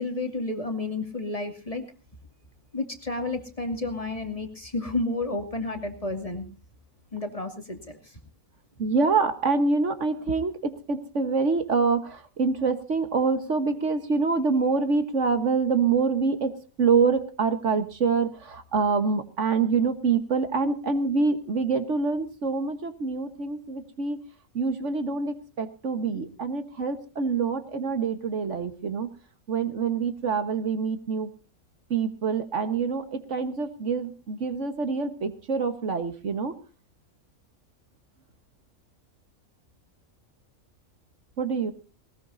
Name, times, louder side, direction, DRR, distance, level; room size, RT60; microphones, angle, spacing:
voice 1, 0.0-1.8 2.7-6.5 7.1-8.2, left 2 dB, 25° left, 5 dB, 2.4 m, -31 dB
voice 2, 8.8-24.2 24.5-29.1 29.5-31.3 31.9-36.5 41.4-41.7, right 4 dB, 60° right, 9 dB, 1.7 m, -26 dB
20.0 x 19.5 x 2.7 m, 0.34 s
omnidirectional pair, 1.4 m